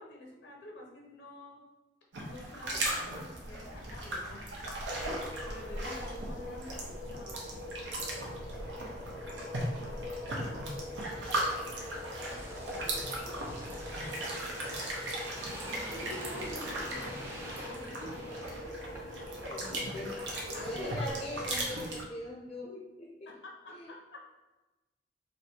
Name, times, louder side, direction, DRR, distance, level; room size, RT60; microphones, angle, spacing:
voice 1, 0.0-1.6 2.2-4.5 5.5-7.5 15.9-18.9 20.4-20.7 23.3-24.2, left 1 dB, 80° left, -1 dB, 0.8 m, -48 dB
sound 1, 2.1-22.0, right 1 dB, 85° right, 0.9 m, -38 dB
sound 2, 4.9-21.6, left 2 dB, 55° right, 0.9 m, -44 dB
voice 2, 8.0-10.9 11.2-11.8 12.3-13.4 14.6-14.9 19.3-20.2 20.5-23.3 23.7-24.0, equal, 35° left, -3 dB, 0.5 m, -45 dB
sound 3, 11.1-19.4 19.7-19.9, right 1 dB, 15° right, 0.6 m, -46 dB
3.3 x 2.6 x 4.3 m, 1.1 s
head